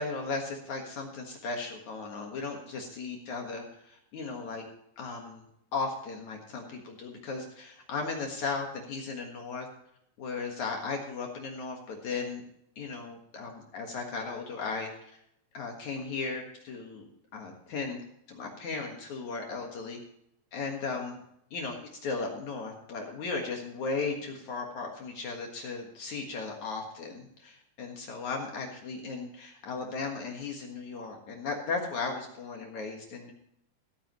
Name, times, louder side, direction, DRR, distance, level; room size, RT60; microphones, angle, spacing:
voice 1, 0.0-4.6 5.0-5.4 5.7-9.7 10.2-12.4 12.8-15.1 15.5-17.1 17.3-18.0 18.3-20.0 20.5-21.2 21.5-33.3, left 4 dB, 60° left, 1 dB, 2.0 m, -36 dB
15.5 x 13.5 x 3.1 m, 0.75 s
omnidirectional pair, 5.6 m